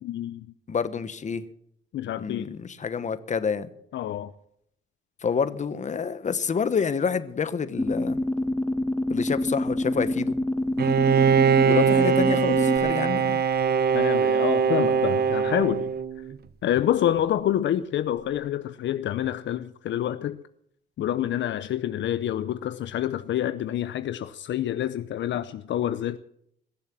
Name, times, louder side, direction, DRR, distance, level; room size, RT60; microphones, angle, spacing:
voice 1, 0.0-0.5 1.9-2.5 3.9-4.3 13.9-15.9 16.6-20.4 21.0-26.2, left 11 dB, 65° left, 0.7 m, -27 dB
voice 2, 0.7-1.4 2.2-3.7 5.2-8.2 9.1-10.4 11.7-13.4, left 6 dB, 35° left, 1.1 m, -28 dB
sound 1, 7.8-12.8, left 1 dB, 10° left, 1.4 m, -27 dB
Bowed string instrument, 10.8-16.4, right 7 dB, 55° right, 0.9 m, -22 dB
21.5 x 7.3 x 7.4 m
cardioid pair, 90°, 20 cm